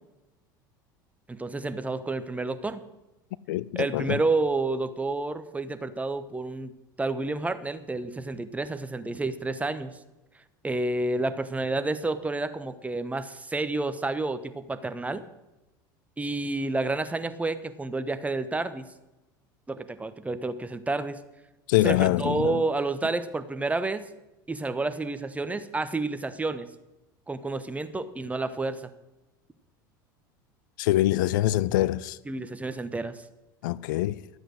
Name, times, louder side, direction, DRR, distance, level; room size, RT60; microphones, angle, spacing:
voice 1, 1.3-2.8 3.8-6.7 7.0-10.0 10.6-15.2 16.2-18.9 19.7-21.2 21.8-24.1 24.5-26.7 27.3-28.8 32.3-33.2, right 2 dB, 15° right, 1.0 m, -30 dB
voice 2, 3.5-4.2 21.7-22.6 30.8-32.2 33.6-34.2, left 15 dB, 70° left, 0.4 m, -24 dB
13.0 x 7.9 x 6.4 m
hypercardioid pair, 80°, 11 cm